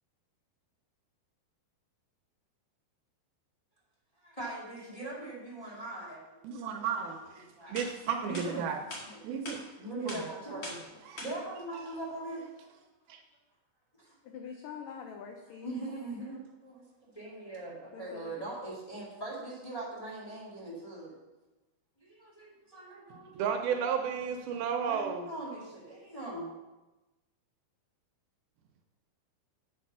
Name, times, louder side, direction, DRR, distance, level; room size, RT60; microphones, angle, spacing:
voice 1, 4.2-6.2 6.7-7.1 7.6-7.8 8.2-8.7 9.0-9.2 9.7-12.5 14.0-14.2 15.6-16.8 17.1-21.1 22.0-23.6 24.8-26.5, right 2 dB, 10° left, -6 dB, 1.8 m, -41 dB
voice 2, 6.4-8.8 9.2-9.7 10.1-10.2 11.1-11.2 13.1-13.2 23.1-25.3, right 7 dB, 75° right, 4 dB, 2.4 m, -33 dB
sound 1, 7.3-7.4 7.7-7.9 8.3-8.5 8.9-9.0 9.5-9.6 10.1-10.2 10.6-10.8 11.2-11.3, left 2 dB, 45° left, 1.7 m, -40 dB
voice 3, 14.2-15.8 17.9-18.8, left 6 dB, 80° left, 3 dB, 1.9 m, -45 dB
8.5 x 6.6 x 5.6 m, 1.1 s
omnidirectional pair, 4.7 m